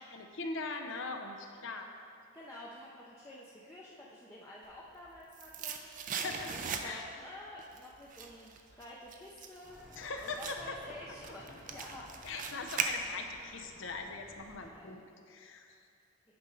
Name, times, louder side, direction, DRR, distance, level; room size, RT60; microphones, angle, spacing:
voice 1, 0.1-1.9 6.2-6.5 6.8-7.1 10.0-10.7 12.2-15.0 15.3-15.7, left 3 dB, 65° left, 4 dB, 0.7 m, -41 dB
voice 2, 2.3-12.2 14.6-15.0, left 1 dB, 15° left, -6 dB, 0.6 m, -50 dB
sound 1, 4.8-7.2 7.6-13.5 13.8-13.9, right 6 dB, 40° right, 0.4 m, -40 dB
sound 2, 9.6-14.7, equal, ahead, 0.9 m, -56 dB
9.4 x 5.4 x 3.9 m, 2.4 s
head